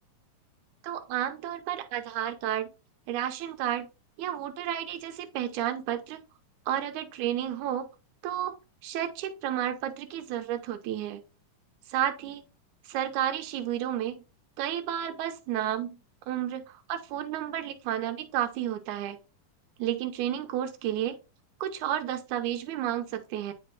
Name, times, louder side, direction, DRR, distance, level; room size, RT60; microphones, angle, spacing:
voice 1, 0.8-2.7 3.1-3.9 4.2-6.2 6.7-7.9 8.2-8.5 8.8-11.2 11.9-12.4 12.9-14.2 14.6-16.0 16.3-19.2 19.8-21.2 21.6-23.5, right 11 dB, 80° right, 2.2 m, -31 dB
8.6 x 4.9 x 2.3 m
omnidirectional pair, 3.6 m